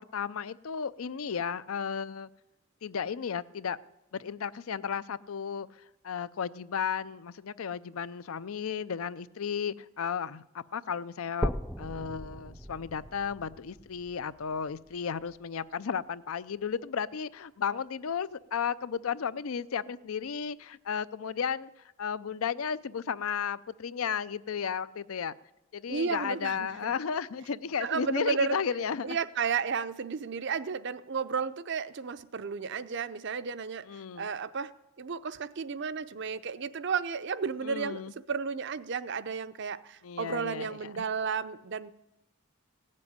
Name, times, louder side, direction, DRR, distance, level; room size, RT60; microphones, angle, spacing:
voice 1, 0.0-2.3 2.8-3.8 4.1-5.7 6.0-21.7 22.0-25.3 25.7-29.2 33.8-34.3 37.6-38.1 40.0-41.1, left 7 dB, 80° left, 16 dB, 0.5 m, -34 dB
sound 1, 11.4-15.4 16.0-16.1 16.6-16.7 17.1-17.2 18.0-18.1, equal, ahead, 0.4 m, -38 dB
voice 2, 25.9-26.9 27.8-28.6 29.0-33.8 34.2-34.7 35.0-38.0 38.3-41.9, right 6 dB, 55° right, 14 dB, 0.5 m, -33 dB
16.5 x 7.6 x 9.5 m, 0.94 s
head